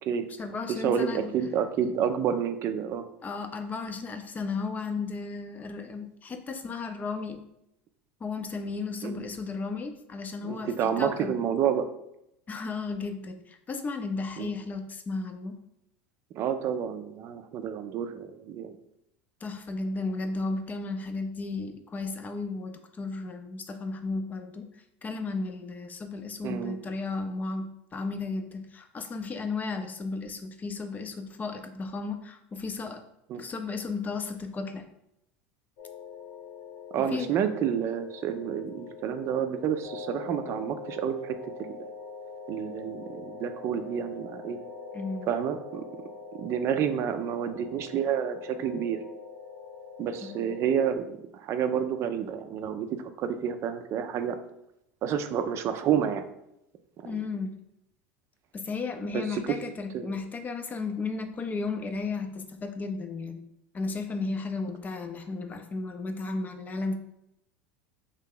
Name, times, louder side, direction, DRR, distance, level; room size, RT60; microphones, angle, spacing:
voice 1, 0.4-1.3 3.2-7.4 8.2-11.3 12.5-15.5 19.4-24.7 25.0-33.0 33.4-34.8 37.0-37.3 44.9-45.3 50.2-50.5 57.0-57.5 58.5-63.4 63.7-67.0, left 3 dB, 25° left, 7 dB, 0.5 m, -34 dB
voice 2, 1.3-3.0 9.0-9.3 10.4-11.9 14.4-14.5 16.4-18.7 26.4-26.8 33.3-33.4 36.9-41.4 41.7-41.9 42.5-44.6 45.3-45.9 46.4-49.0 50.0-54.4 55.0-56.2 57.0-57.1 59.1-59.2 59.9-60.1, right 8 dB, 45° right, 9 dB, 0.4 m, -29 dB
sound 1, 35.8-50.9, left 5 dB, 65° left, 0.8 m, -43 dB
3.2 x 2.7 x 3.7 m, 0.81 s
hypercardioid pair, 90°, 6 cm